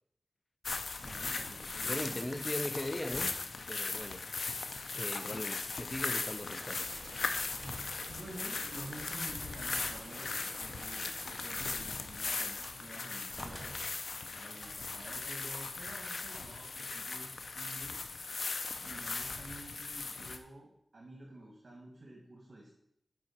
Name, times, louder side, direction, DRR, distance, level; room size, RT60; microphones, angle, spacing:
sound 1, 0.6-20.4, left 4 dB, 85° left, 0.5 m, -38 dB
sound 2, 0.9-2.3 2.7-3.8 4.1-4.2 4.9-5.5 7.3-8.4 9.0-9.6 10.7-12.9 13.3-14.2 14.5-15.2, equal, ahead, 1.2 m, -52 dB
voice 1, 1.0-2.4 8.1-11.1 11.4-13.8 14.3-18.0 18.8-22.7, right 1 dB, 55° right, 1.3 m, -50 dB
voice 2, 1.8-3.4 3.7-4.5 4.9-6.9, left 1 dB, 20° left, 0.5 m, -39 dB
sound 3, 6.5-11.6, right 4 dB, 75° right, 0.5 m, -52 dB
7.6 x 4.9 x 4.2 m
wide cardioid pair, 95°, 0 cm